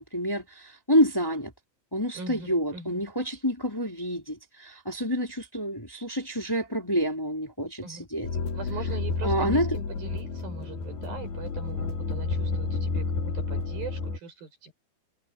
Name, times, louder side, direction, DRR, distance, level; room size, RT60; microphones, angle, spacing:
voice 1, 0.0-1.5 1.9-8.3 9.2-9.7, equal, 5° left, 4.1 m, -28 dB
voice 2, 2.1-3.0 7.8-8.1 8.5-14.7, right 4 dB, 70° right, 9.5 m, -41 dB
sound 1, 8.2-14.2, left 4 dB, 85° left, 7.0 m, -30 dB
omnidirectional pair, 4.3 m